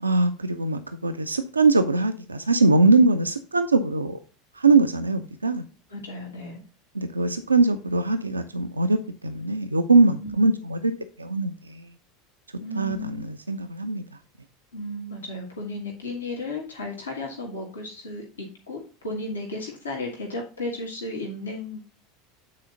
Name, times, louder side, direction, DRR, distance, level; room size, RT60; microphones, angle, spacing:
voice 1, 0.0-4.2 4.6-5.6 7.0-10.9 11.2-11.9 12.8-14.0, right 3 dB, 85° right, 0.4 m, -22 dB
voice 2, 5.9-6.6 10.2-10.4 12.6-13.2 14.7-21.9, left 2 dB, 80° left, 1.5 m, -34 dB
8.5 x 4.2 x 3.8 m
figure-of-eight pair, 75°, 0 cm